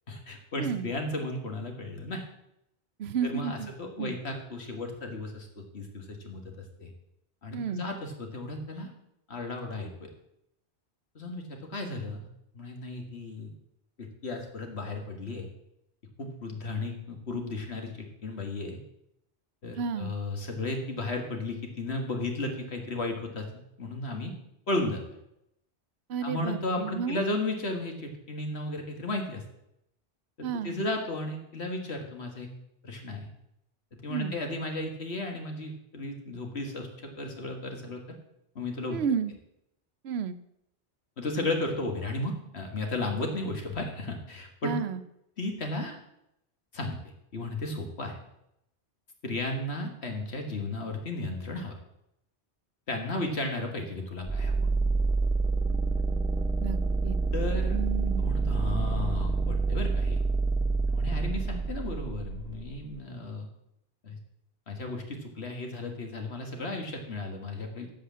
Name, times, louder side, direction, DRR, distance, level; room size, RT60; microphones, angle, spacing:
voice 1, 0.1-2.2 3.2-5.5 5.7-6.4 6.8-6.9 7.4-8.9 9.3-10.1 11.2-12.3 12.5-13.5 14.0-15.5 16.2-18.8 19.6-23.5 23.8-24.3 24.7-25.0 26.2-29.4 30.6-32.5 32.8-33.3 33.9-38.0 38.6-39.0 41.2-44.7 45.4-46.0 46.7-47.0 47.3-48.1 49.2-51.7 52.9-54.5 57.3-57.8 58.2-60.2 60.9-63.5 64.0-64.2 64.7-67.9, left 2 dB, 70° left, 3 dB, 2.1 m, -34 dB
voice 2, 3.0-3.7 4.0-4.1 7.5-7.8 19.8-20.1 26.1-27.2 30.4-30.8 34.1-34.3 38.9-39.3 40.0-40.4 44.6-45.0 56.6-56.8 57.0-57.2 57.7-58.3, right 6 dB, 70° right, 13 dB, 0.9 m, -31 dB
sound 1, 54.3-63.0, right 3 dB, 5° right, 0.5 m, -27 dB
14.0 x 5.0 x 7.4 m, 0.82 s
omnidirectional pair, 1.1 m